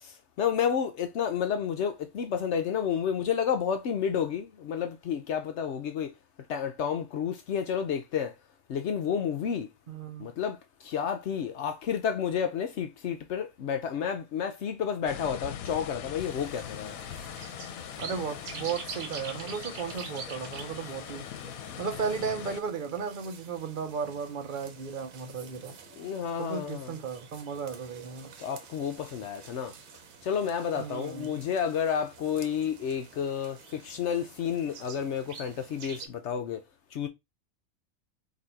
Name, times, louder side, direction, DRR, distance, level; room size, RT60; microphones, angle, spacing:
voice 1, 0.0-6.1 6.5-8.3 8.7-9.7 10.2-10.6 10.8-17.0 26.0-27.0 28.4-29.7 30.2-36.6 36.9-37.1, left 8 dB, 65° left, 0.8 m, -30 dB
voice 2, 9.9-10.3 18.0-21.3 21.8-25.8 26.4-28.3 30.8-31.4, right 6 dB, 45° right, 0.7 m, -35 dB
sound 1, 15.1-22.6, left 10 dB, 85° left, 1.0 m, -41 dB
sound 2, 16.2-36.1, right 6 dB, 75° right, 1.2 m, -47 dB
4.0 x 2.7 x 4.4 m
omnidirectional pair, 1.4 m